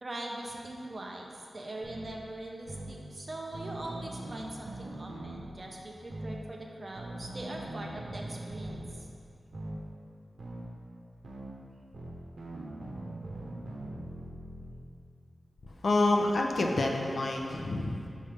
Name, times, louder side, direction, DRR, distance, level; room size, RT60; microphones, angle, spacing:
voice 1, 0.0-8.8, right 1 dB, 35° right, 0 dB, 0.7 m, -42 dB
sound 1, 1.8-2.1 2.7-2.9 3.5-5.5 6.1-6.4 7.0-8.9 9.5-9.8 10.4-10.6 11.2-11.5 11.9-14.7, right 1 dB, 85° right, 0.9 m, -41 dB
voice 2, 15.6-18.1, left 2 dB, 60° left, 1 dB, 0.6 m, -28 dB
6.5 x 5.5 x 3.4 m, 2.4 s
wide cardioid pair, 125°, 0 cm